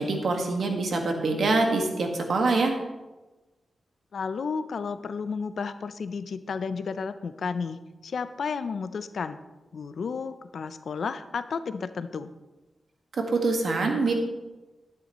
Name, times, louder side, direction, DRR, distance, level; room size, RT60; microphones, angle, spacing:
voice 1, 0.0-2.7 13.3-14.1, right 3 dB, 70° right, 3 dB, 1.6 m, -25 dB
voice 2, 4.1-9.4 9.7-12.3, left 5 dB, 70° left, 12 dB, 0.5 m, -32 dB
11.5 x 9.8 x 3.0 m, 1.1 s
wide cardioid pair, 90°, 0 cm